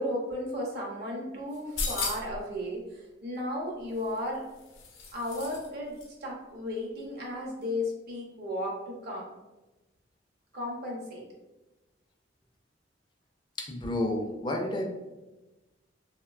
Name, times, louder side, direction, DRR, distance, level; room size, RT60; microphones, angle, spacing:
voice 1, 0.0-2.8 3.2-4.4 5.1-9.2 10.5-11.3, left 1 dB, 55° right, -2 dB, 0.7 m, -34 dB
sound 1, 1.5-2.4 3.9-5.7 6.0-6.1, left 4 dB, 85° left, 0.5 m, -36 dB
voice 2, 13.7-14.8, left 1 dB, 25° left, 1 dB, 0.4 m, -30 dB
2.9 x 2.1 x 2.3 m, 1.1 s
head